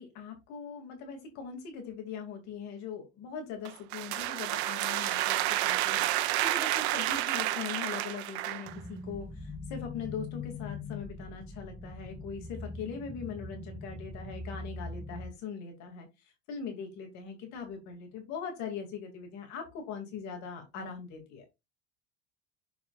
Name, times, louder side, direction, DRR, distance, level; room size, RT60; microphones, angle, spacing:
voice 1, 0.0-6.0 6.4-16.1 16.5-21.4, left 6 dB, 60° left, 4 dB, 2.6 m, -41 dB
sound 1, 3.6-8.8, right 15 dB, 90° right, 1.0 m, -30 dB
sound 2, 8.7-15.3, left 3 dB, ahead, 0.6 m, -42 dB
7.0 x 6.7 x 2.4 m, 0.22 s
cardioid pair, 140°, 32 cm